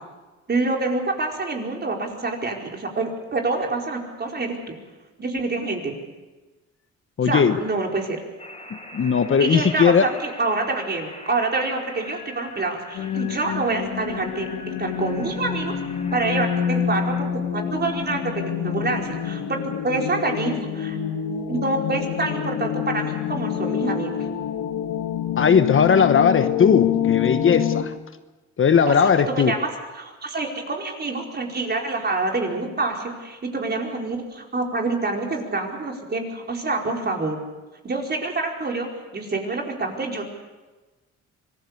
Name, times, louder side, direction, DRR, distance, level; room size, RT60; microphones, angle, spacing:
voice 1, 0.5-4.8 5.2-5.9 7.2-8.2 9.4-15.7 16.1-17.3 17.5-21.0 21.5-24.1 28.9-29.7 29.9-37.4 37.8-40.2, right 3 dB, 35° right, 1 dB, 4.8 m, -27 dB
voice 2, 7.2-7.6 8.9-10.1 25.4-27.9 28.6-29.5, left 6 dB, 45° left, 10 dB, 1.1 m, -18 dB
sound 1, 8.4-17.2, left 2 dB, 20° left, 5.2 m, -42 dB
sound 2, 12.9-27.8, left 9 dB, 75° left, 1.6 m, -27 dB
25.5 x 19.5 x 7.0 m, 1.2 s
cardioid pair, 90°, 30 cm